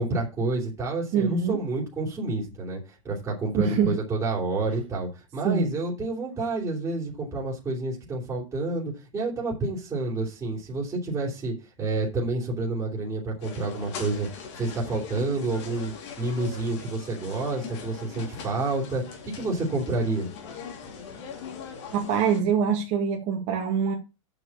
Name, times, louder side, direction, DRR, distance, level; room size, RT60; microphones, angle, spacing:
voice 1, 0.0-20.3, right 2 dB, 15° right, 3.3 m, -29 dB
voice 2, 1.1-1.6 3.5-3.9 5.4-5.7 21.9-23.9, right 7 dB, 45° right, 2.1 m, -24 dB
sound 1, 13.4-22.4, left 6 dB, 55° left, 3.3 m, -41 dB
7.1 x 6.2 x 7.3 m
supercardioid pair, 135°, 17 cm